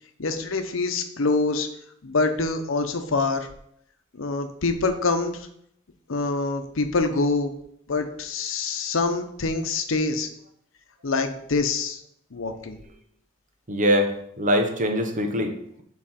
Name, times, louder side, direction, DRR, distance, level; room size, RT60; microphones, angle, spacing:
voice 1, 0.2-1.7 2.0-3.5 4.1-5.5 6.1-7.5 7.9-10.3 11.0-12.0 12.3-12.8, left 3 dB, 80° left, 7 dB, 0.8 m, -25 dB
voice 2, 13.7-15.8, equal, 40° right, 4 dB, 0.9 m, -23 dB
7.4 x 4.1 x 4.3 m, 0.72 s
head